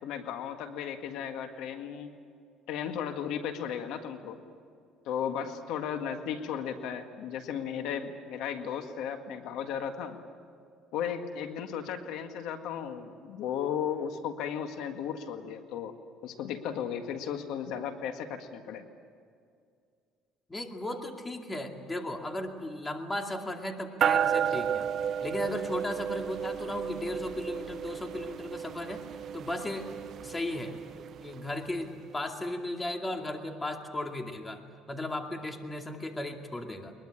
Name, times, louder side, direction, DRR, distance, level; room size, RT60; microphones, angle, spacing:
voice 1, 0.0-2.1 2.7-4.4 5.0-10.2 10.9-15.9 16.2-18.8, left 8 dB, 75° left, 7 dB, 1.8 m, -35 dB
voice 2, 20.5-24.9 25.2-29.0 29.3-29.9 30.2-34.6 34.9-36.9, left 1 dB, 15° left, 4 dB, 2.4 m, -36 dB
sound 1, 24.0-31.7, right 8 dB, 50° right, 0.7 m, -32 dB
22.5 x 21.5 x 9.9 m, 2.2 s
cardioid pair, 115°, 0 cm